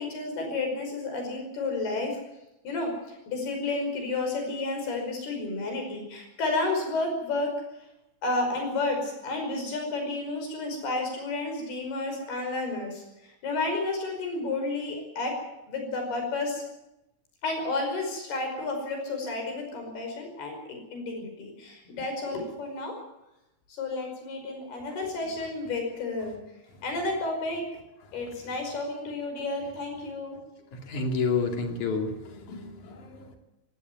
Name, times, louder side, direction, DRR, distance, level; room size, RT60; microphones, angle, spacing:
voice 1, 0.0-2.2 2.6-7.5 8.2-15.4 15.7-16.6 17.4-23.0 23.7-26.4 26.8-27.6 28.1-30.4, left 2 dB, 90° left, 4 dB, 7.4 m, -31 dB
voice 2, 30.9-32.1 32.5-33.4, left 4 dB, 55° left, 4 dB, 3.9 m, -29 dB
18.0 x 17.0 x 9.4 m, 0.90 s
omnidirectional pair, 4.4 m